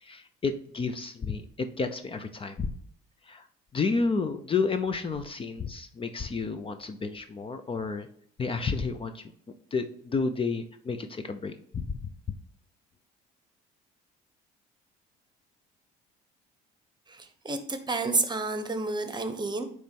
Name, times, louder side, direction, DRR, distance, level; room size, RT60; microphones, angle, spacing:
voice 1, 0.0-2.7 3.3-3.4 3.7-8.1 8.4-9.2 9.7-11.8, left 4 dB, 30° left, 9 dB, 0.7 m, -31 dB
voice 2, 17.1-19.6, right 3 dB, 25° right, 9 dB, 1.1 m, -30 dB
8.6 x 3.2 x 5.3 m, 0.62 s
supercardioid pair, 85°, 18 cm